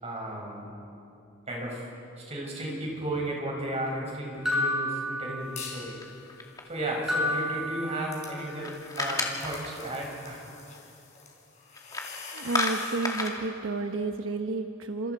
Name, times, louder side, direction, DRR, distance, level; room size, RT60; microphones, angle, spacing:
voice 1, 0.0-0.7 1.5-1.8 2.3-6.0 6.7-10.4, right 1 dB, 35° right, -2 dB, 6.5 m, -34 dB
sound 1, 4.5-5.9 7.1-8.5, left 1 dB, 5° right, 6.6 m, -30 dB
sound 2, 5.4-5.9 6.3-13.1, left 5 dB, 35° left, 4.9 m, -46 dB
sound 3, 6.0-6.9 8.3-9.9 11.8-12.1 12.4-13.4, left 2 dB, 20° left, 2.3 m, -32 dB
voice 2, 12.3-15.1, right 3 dB, 85° right, 5 dB, 1.0 m, -31 dB
29.0 x 27.5 x 4.8 m, 2.7 s
head